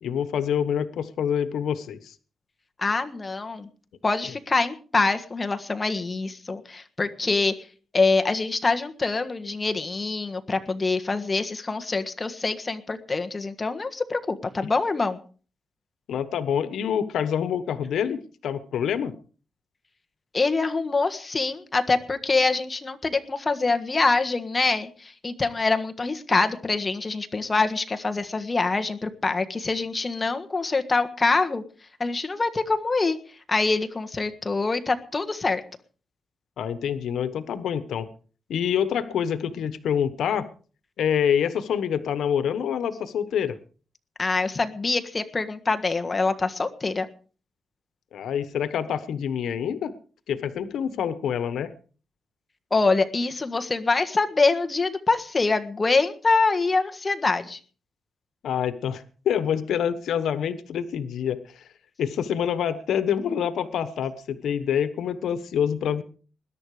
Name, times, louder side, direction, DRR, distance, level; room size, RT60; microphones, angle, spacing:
voice 1, 0.0-2.1 14.6-14.7 16.1-19.1 36.6-38.1 38.5-40.5 41.0-43.5 48.1-49.9 50.3-51.7 58.4-61.6 62.0-66.0, left 8 dB, 90° left, 13 dB, 1.2 m, -26 dB
voice 2, 2.8-3.7 4.0-7.5 7.9-15.2 20.3-31.6 32.0-33.2 33.5-35.6 44.2-47.1 52.7-57.6, left 3 dB, 25° left, 6 dB, 1.5 m, -25 dB
21.0 x 11.0 x 4.9 m, 0.40 s
wide cardioid pair, 125°, 0 cm